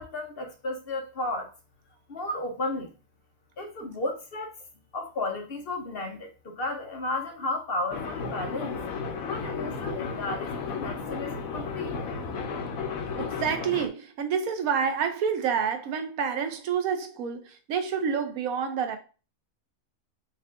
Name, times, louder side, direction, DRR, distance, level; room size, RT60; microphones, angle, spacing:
voice 1, 0.0-1.5 2.1-2.9 3.6-4.5 4.9-8.8 9.3-12.0, left 2 dB, 50° left, 0.8 m, -33 dB
sound 1, 7.9-13.9, left 5 dB, 80° left, 1.2 m, -33 dB
voice 2, 13.2-19.0, right 7 dB, 90° right, 1.2 m, -28 dB
4.6 x 2.4 x 3.6 m
omnidirectional pair, 1.4 m